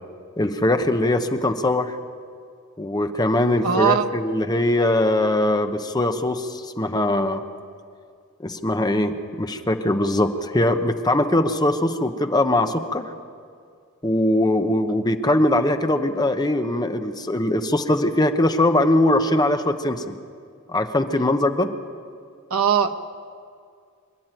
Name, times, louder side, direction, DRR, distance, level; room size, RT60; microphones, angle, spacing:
voice 1, 0.4-2.0 2.8-7.4 8.4-13.1 14.0-20.1 20.7-21.7, left 1 dB, 20° left, 7 dB, 0.9 m, -21 dB
voice 2, 3.6-4.1 22.5-22.9, right 7 dB, 80° right, 6 dB, 1.1 m, -19 dB
25.5 x 11.5 x 9.1 m, 2.2 s
head